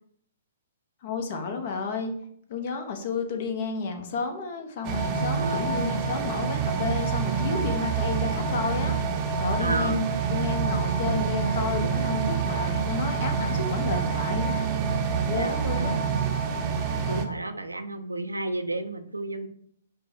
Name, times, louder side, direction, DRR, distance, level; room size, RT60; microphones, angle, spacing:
voice 1, 1.0-2.1 2.5-9.0 9.4-14.6 15.3-16.0, left 4 dB, 50° left, 5 dB, 0.8 m, -31 dB
sound 1, 4.8-17.3, right 6 dB, 30° right, 0.6 m, -27 dB
voice 2, 5.4-5.8 9.6-10.1 15.4-16.3 16.9-19.5, right 2 dB, 85° right, 9 dB, 0.4 m, -32 dB
5.2 x 2.2 x 4.3 m, 0.65 s
figure-of-eight pair, 115°, 0 cm